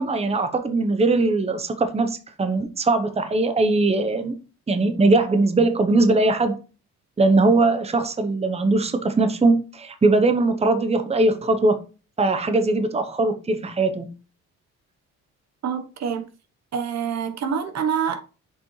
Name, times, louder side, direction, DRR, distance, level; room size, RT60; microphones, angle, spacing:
voice 1, 0.0-4.4 4.7-6.6 7.2-11.8 12.2-14.1, right 2 dB, 20° right, 0.9 m, -20 dB
voice 2, 15.6-16.2 16.7-18.2, right 7 dB, 60° right, 1.1 m, -26 dB
6.7 x 5.2 x 3.1 m
cardioid pair, 90°, 30 cm